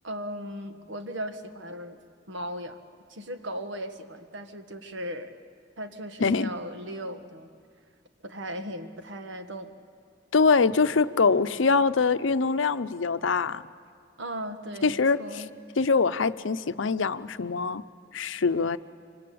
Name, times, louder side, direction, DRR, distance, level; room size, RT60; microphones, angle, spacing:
voice 1, 0.0-2.0 2.3-2.8 3.1-5.3 5.8-7.5 8.2-9.7 14.2-15.5, equal, 85° right, 7 dB, 1.6 m, -37 dB
voice 2, 10.3-13.6 14.8-15.4 15.8-17.8 18.1-18.8, left 4 dB, 90° left, 12 dB, 0.7 m, -23 dB
25.5 x 25.5 x 8.6 m, 2.3 s
head